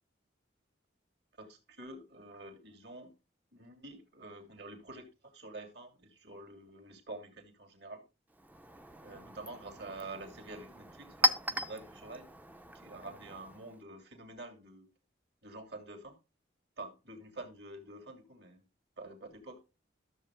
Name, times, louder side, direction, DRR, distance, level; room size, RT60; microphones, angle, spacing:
voice 1, 1.4-3.1 3.5-8.0 9.0-12.3 12.7-14.9 15.4-16.2 16.8-18.6 19.0-19.6, right 2 dB, 60° right, 2.5 m, -48 dB
Chink clink, 8.3-13.8, left 1 dB, 10° right, 0.5 m, -37 dB
13.5 x 7.4 x 2.3 m
head